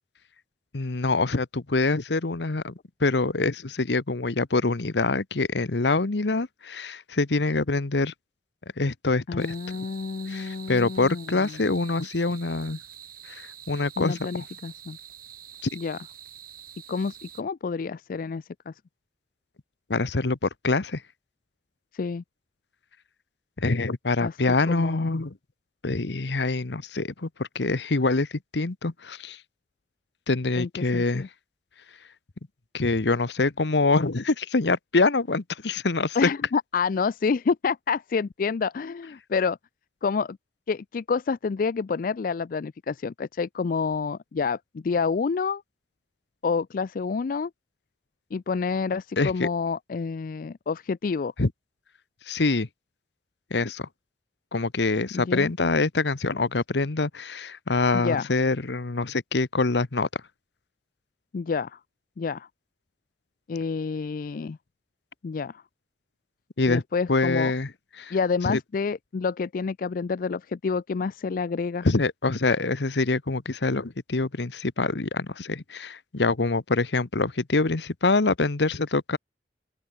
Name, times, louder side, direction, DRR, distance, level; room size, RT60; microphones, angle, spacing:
voice 1, 0.7-2.7 3.0-8.1 8.8-9.7 10.3-12.8 13.3-14.2 15.6-15.7 19.9-21.0 23.6-25.3 25.8-28.3 28.5-29.4 30.3-31.2 32.7-36.3 49.2-49.5 51.4-51.5 52.3-52.7 53.5-53.9 54.5-60.1 66.6-66.8 67.1-67.7 68.0-68.2 68.4-68.6 71.8-79.2, left 3 dB, 80° left, 1.1 m, -25 dB
voice 2, 9.3-11.6 14.0-15.0 15.8-16.0 16.9-18.7 21.9-22.2 24.2-24.4 24.6-25.1 30.6-31.3 36.1-39.6 40.0-40.4 40.7-45.6 46.4-47.5 48.3-51.3 55.1-55.5 57.9-58.3 61.3-61.8 62.2-62.5 63.5-64.6 65.2-65.6 66.7-67.5 68.1-71.9, left 5 dB, 50° left, 0.4 m, -28 dB
sound 1, 9.4-17.4, right 10 dB, 55° right, 7.7 m, -46 dB
open air
head